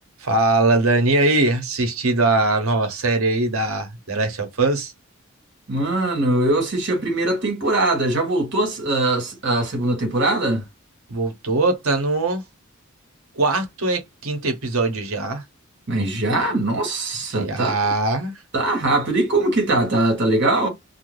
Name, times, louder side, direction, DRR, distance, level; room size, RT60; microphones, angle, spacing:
voice 1, 0.2-4.9 11.1-12.4 13.4-15.4 17.3-18.3, right 2 dB, 90° right, 0.9 m, -21 dB
voice 2, 5.7-10.6 15.9-17.9 18.5-20.7, right 2 dB, 60° right, 1.3 m, -21 dB
2.5 x 2.2 x 3.3 m
head